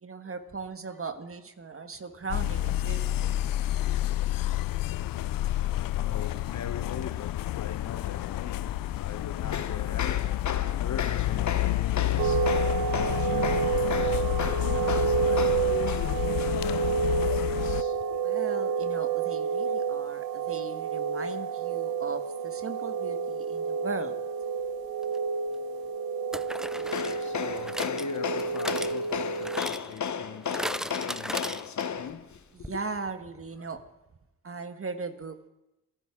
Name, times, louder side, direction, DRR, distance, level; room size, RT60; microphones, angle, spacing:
voice 1, 0.0-3.4 18.2-24.2 32.5-33.8 34.4-35.5, right 4 dB, 40° right, 1.4 m, -38 dB
sound 1, 2.3-17.8, left 15 dB, 70° left, 0.5 m, -29 dB
voice 2, 5.4-18.2 26.7-32.8, left 7 dB, 55° left, 0.9 m, -36 dB
sound 2, 12.2-29.6, right 6 dB, 90° right, 0.8 m, -29 dB
sound 3, 25.0-25.2 26.3-32.1 32.3-32.4 32.6-32.7, equal, ahead, 0.4 m, -38 dB
28.0 x 10.5 x 3.7 m
supercardioid pair, 50°, 35 cm